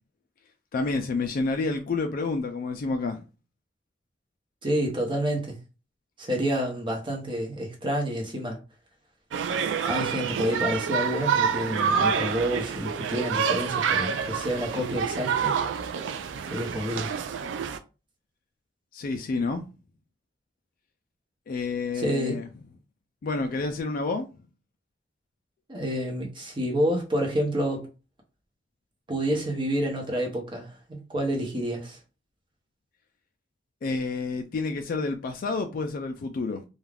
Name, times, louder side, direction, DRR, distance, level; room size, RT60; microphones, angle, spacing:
voice 1, 0.7-3.2 18.9-19.7 21.5-22.5 23.2-24.3 33.8-36.6, left 3 dB, 50° left, 0.3 m, -29 dB
voice 2, 4.6-5.6 6.2-8.6 9.8-15.6 16.5-17.1 21.9-22.4 25.7-27.9 29.1-32.0, equal, 25° right, 0.8 m, -28 dB
sound 1, 9.3-17.8, right 7 dB, 85° right, 0.3 m, -27 dB
2.4 x 2.3 x 3.3 m
head